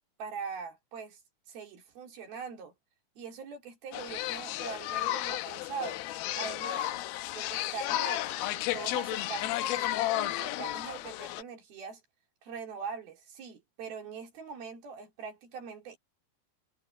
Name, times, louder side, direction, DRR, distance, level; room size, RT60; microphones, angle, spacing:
voice 1, 0.2-1.2 1.5-2.7 3.2-6.0 6.3-6.9 7.3-12.0 12.4-16.0, right 5 dB, 80° right, 5.0 m, -42 dB
sound 1, 3.9-11.4, left 15 dB, 80° left, 2.7 m, -33 dB
omnidirectional pair, 4.3 m